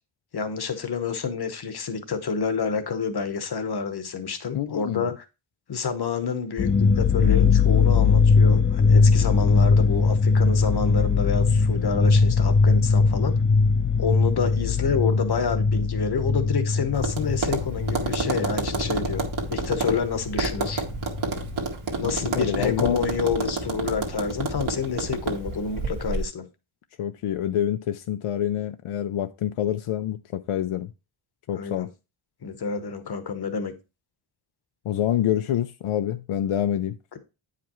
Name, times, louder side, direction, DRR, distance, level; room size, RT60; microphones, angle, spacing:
voice 1, 0.3-5.2 5.7-13.4 14.0-19.2 19.5-20.8 22.0-26.5 31.5-31.9 32.4-33.7, left 5 dB, 50° left, 1.0 m, -28 dB
voice 2, 4.5-5.1 22.0-23.1 27.0-30.9 31.5-31.9 34.8-37.0, left 11 dB, 85° left, 0.6 m, -27 dB
sound 1, 6.6-21.7 21.9-23.1 23.4-23.5 23.9-24.5, left 4 dB, 25° left, 0.5 m, -21 dB
Tap, 16.9-26.2, right 3 dB, 70° right, 1.5 m, -30 dB
9.1 x 5.1 x 3.0 m
wide cardioid pair, 150°, 50 cm